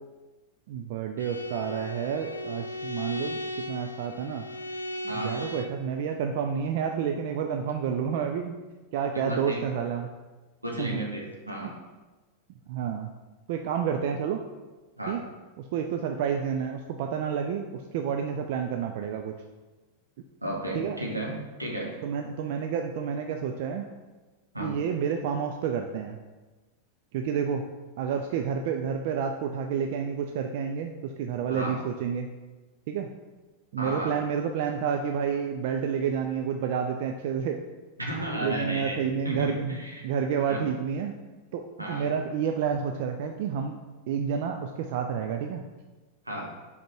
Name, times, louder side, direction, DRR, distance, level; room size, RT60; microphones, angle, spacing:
voice 1, 0.7-3.4 3.7-4.4 5.2-8.6 8.9-10.1 10.8-11.0 12.7-13.1 13.5-14.4 15.1-15.2 15.6-19.3 20.7-21.0 22.0-23.9 24.6-26.2 27.1-27.6 28.0-32.3 32.9-33.1 33.7-37.6 38.4-39.8 40.0-41.2 41.5-43.8 44.1-45.6, right 7 dB, 50° right, 5 dB, 0.4 m, -29 dB
Bowed string instrument, 1.2-5.9, equal, 75° left, 0.5 m, -36 dB
voice 2, 5.1-5.4 9.1-9.6 10.6-11.7 15.0-15.2 20.4-21.9 24.5-24.7 31.5-31.8 33.8-34.2 38.0-40.1 40.5-40.7 41.8-42.1 46.2-46.5, right 1 dB, 85° right, -2 dB, 1.4 m, -33 dB
5.1 x 5.0 x 4.4 m, 1.2 s
figure-of-eight pair, 90°, 0 cm